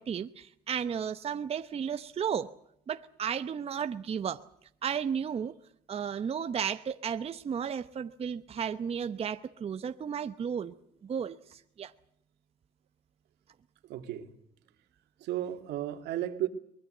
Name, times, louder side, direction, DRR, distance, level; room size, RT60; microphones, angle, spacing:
voice 1, 0.0-2.5 2.9-4.4 4.8-5.6 5.9-10.7 11.0-11.9, right 7 dB, 35° right, 9 dB, 0.9 m, -33 dB
voice 2, 13.8-14.3 15.2-16.5, right 12 dB, 80° right, 6 dB, 2.6 m, -34 dB
23.0 x 20.5 x 7.9 m, 0.72 s
cardioid pair, 110°, 17 cm